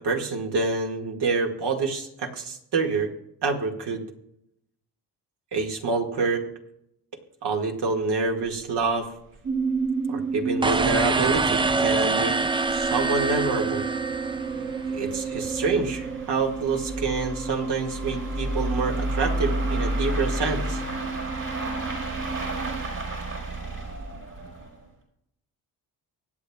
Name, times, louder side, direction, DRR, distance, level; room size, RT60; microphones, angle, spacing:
voice 1, 0.0-3.1 3.4-4.0 5.5-6.5 7.4-9.1 10.1-12.4 12.7-13.9 14.9-20.8, right 4 dB, 75° right, 3 dB, 2.0 m, -27 dB
sound 1, 8.5-8.6 8.8-8.9 9.4-9.5 9.8-9.9 10.5-24.9, right 1 dB, 55° right, 4.8 m, -33 dB
sound 2, 9.4-22.8, right 5 dB, 40° right, 1.3 m, -31 dB
sound 3, 10.6-14.8, right 3 dB, 15° right, 0.4 m, -25 dB
24.0 x 8.9 x 2.3 m, 0.79 s
cardioid pair, 90°, 41 cm